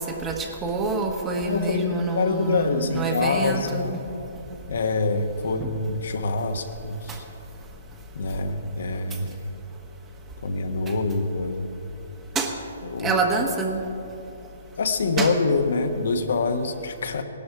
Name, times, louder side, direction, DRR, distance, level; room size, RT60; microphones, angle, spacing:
voice 1, 0.0-4.0 5.6-5.7 7.1-7.2 12.3-12.5 13.0-13.8 15.2-15.3, right 3 dB, 15° right, 3 dB, 1.3 m, -26 dB
voice 2, 1.4-3.9 4.7-7.2 8.1-9.5 10.4-11.7 12.8-13.2 14.8-17.2, left 3 dB, 70° left, 6 dB, 1.2 m, -25 dB
18.0 x 12.0 x 4.7 m, 3.0 s
hypercardioid pair, 145°, 0 cm